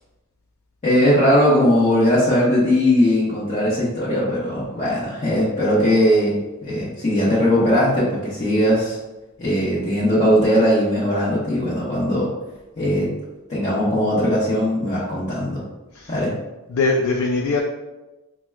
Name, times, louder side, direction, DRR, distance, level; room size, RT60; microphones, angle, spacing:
voice 1, 0.8-9.0 9.4-12.3 12.8-13.1 13.5-15.6 16.1-16.3, equal, 35° left, -10 dB, 1.0 m, -19 dB
voice 2, 16.7-17.6, left 3 dB, 70° left, 0 dB, 0.4 m, -21 dB
5.8 x 2.2 x 2.3 m, 1.1 s
head